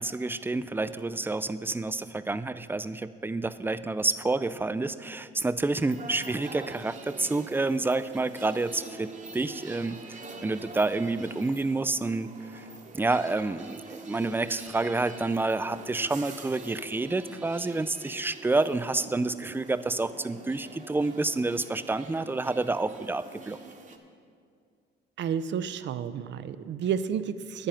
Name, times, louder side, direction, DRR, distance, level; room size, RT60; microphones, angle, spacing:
voice 1, 0.0-12.6 12.9-23.6, right 3 dB, 10° right, 14 dB, 0.3 m, -29 dB
sound 1, 5.7-24.0, right 4 dB, 40° right, 1.1 m, -45 dB
voice 2, 25.2-27.7, right 8 dB, 65° right, 13 dB, 0.5 m, -31 dB
9.0 x 8.9 x 5.6 m, 2.1 s
cardioid pair, 90°, 20 cm